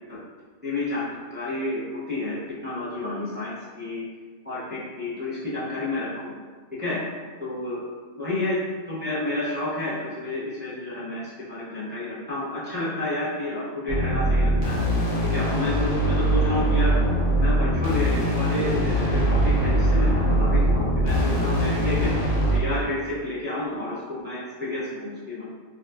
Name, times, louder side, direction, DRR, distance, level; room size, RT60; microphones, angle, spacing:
voice 1, 0.6-4.1 4.4-6.3 6.8-7.0 7.4-7.8 8.2-8.6 8.9-14.8 15.2-17.0 17.4-22.3 22.5-25.5, left 2 dB, 10° right, -10 dB, 0.6 m, -30 dB
sound 1, 13.9-22.6, right 1 dB, 40° left, 0.6 m, -22 dB
3.7 x 2.6 x 2.3 m, 1.5 s
omnidirectional pair, 1.4 m